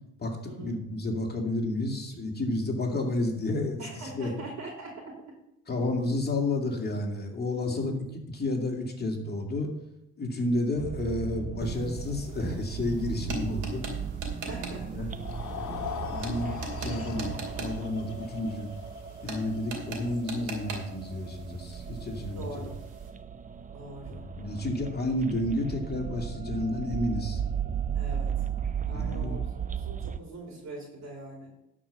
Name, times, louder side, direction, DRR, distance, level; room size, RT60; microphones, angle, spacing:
voice 1, 0.2-4.3 5.7-8.0 8.3-9.7 10.2-13.8 14.7-15.1 15.5-15.7 16.1-16.5 16.8-18.7 19.2-22.7 24.1-27.4 28.9-29.3, left 2 dB, 30° left, 1 dB, 2.3 m, -31 dB
voice 2, 3.8-5.1 7.7-7.9 14.5-15.0 22.3-22.8 23.7-24.3 27.9-28.4 28.8-29.4 29.7-31.5, right 2 dB, 65° right, 0 dB, 3.1 m, -42 dB
sound 1, 10.8-30.2, right 7 dB, 25° right, 0.5 m, -36 dB
sound 2, 11.6-23.1, right 3 dB, 90° right, 2.6 m, -42 dB
sound 3, 15.1-21.4, left 8 dB, 70° left, 1.5 m, -41 dB
11.5 x 5.0 x 6.9 m, 0.84 s
cardioid pair, 90°, 30 cm